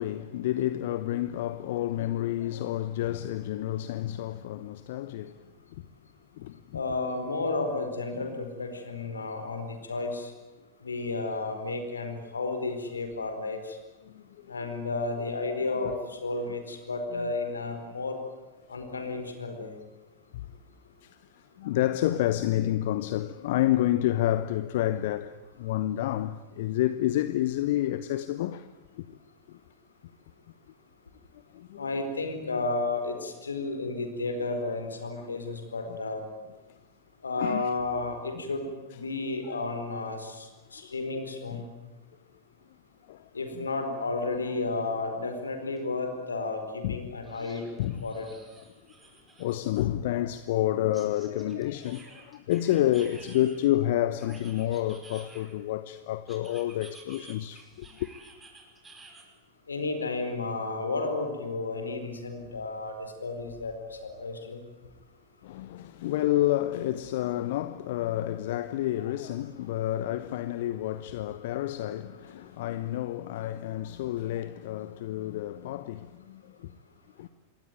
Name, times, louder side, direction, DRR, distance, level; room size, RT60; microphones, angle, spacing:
voice 1, 0.0-5.8 6.4-6.8 14.0-14.6 15.8-15.9 17.1-17.3 18.7-18.9 20.3-20.5 21.0-28.7 28.9-29.2 29.5-29.6 31.5-31.9 35.2-35.3 35.9-36.0 37.4-37.7 38.9-39.0 39.4-39.6 41.5-41.7 43.1-43.7 46.8-47.5 47.8-48.0 48.6-48.7 49.4-58.1 65.4-76.7 77.2-77.3, left 13 dB, 55° left, 0.9 m, -30 dB
voice 2, 6.7-10.3 10.8-13.6 14.5-15.9 16.2-18.2 18.7-19.7 31.8-36.2 37.2-40.5 40.7-41.6 43.3-47.7 48.0-48.3 59.7-62.9 63.2-63.7 64.0-64.6, left 3 dB, 75° left, 4.6 m, -32 dB
sound 1, 45.8-45.9 46.2-46.3 47.2-49.8 50.9-53.7 54.2-55.7 56.3-59.2, right 3 dB, 15° right, 5.7 m, -52 dB
27.0 x 21.5 x 9.4 m
figure-of-eight pair, 90°, 0 cm